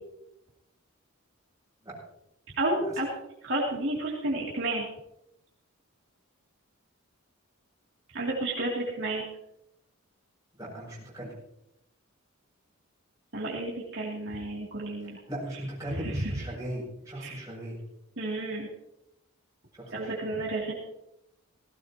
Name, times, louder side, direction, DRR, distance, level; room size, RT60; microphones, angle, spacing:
voice 1, 2.6-3.1 3.4-4.9 8.1-9.2 13.3-15.2 15.9-16.3 17.2-17.4 18.2-18.7 19.9-20.7, right 2 dB, 60° right, -4 dB, 3.0 m, -31 dB
voice 2, 10.6-11.3 15.0-17.8 19.8-20.1, right 1 dB, 15° right, -5 dB, 7.0 m, -38 dB
18.0 x 16.0 x 3.0 m, 0.84 s
head